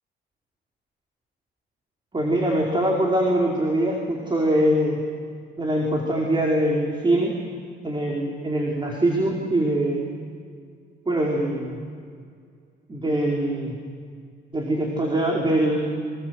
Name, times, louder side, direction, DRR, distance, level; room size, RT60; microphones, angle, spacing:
voice 1, 2.1-5.0 5.6-7.3 7.8-10.0 11.1-11.8 12.9-13.7 14.5-15.9, right 1 dB, 25° right, -1 dB, 4.8 m, -23 dB
27.5 x 25.5 x 8.1 m, 2.2 s
cardioid pair, 90°, 20 cm